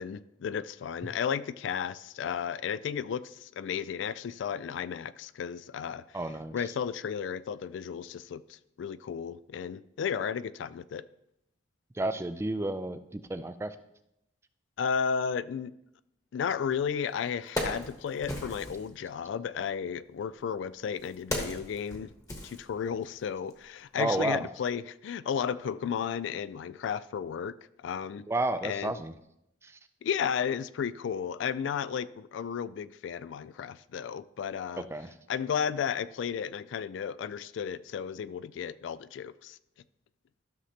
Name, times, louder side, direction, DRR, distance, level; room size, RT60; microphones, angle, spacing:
voice 1, 0.0-6.2 6.5-11.1 14.8-15.7 16.3-22.1 22.4-28.3 28.6-29.0 30.0-34.9 35.3-39.6, left 7 dB, 75° left, 0.3 m, -33 dB
voice 2, 6.1-6.7 11.9-13.8 24.0-24.5 28.3-29.1 29.6-29.8 34.8-35.1, right 2 dB, 15° right, 0.3 m, -31 dB
Wood, 16.7-16.8 17.2-18.9 19.9-23.2 23.5-23.6, left 1 dB, 20° left, 1.1 m, -37 dB
13.0 x 6.4 x 2.8 m
head